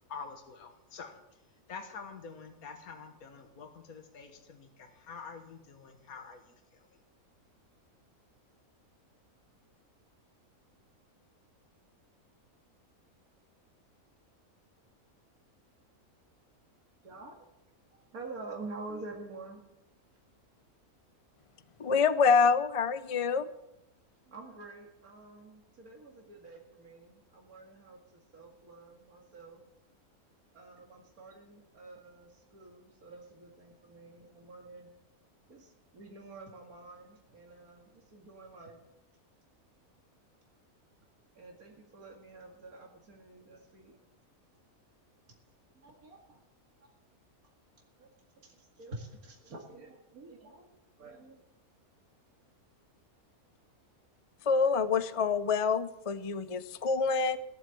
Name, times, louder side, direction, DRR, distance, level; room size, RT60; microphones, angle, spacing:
voice 1, 0.1-1.1 1.7-6.4, left 5 dB, 80° left, 6 dB, 1.8 m, -46 dB
voice 2, 17.0-17.5 17.9-19.6 24.2-29.6 30.5-34.9 35.5-38.8 41.3-44.0 45.7-46.4 48.0-48.1 48.4-51.4, right 3 dB, 75° right, 0 dB, 2.6 m, -48 dB
voice 3, 21.8-23.5 54.5-57.4, left 5 dB, 45° left, 13 dB, 0.4 m, -26 dB
18.0 x 7.6 x 8.9 m, 0.88 s
omnidirectional pair, 1.5 m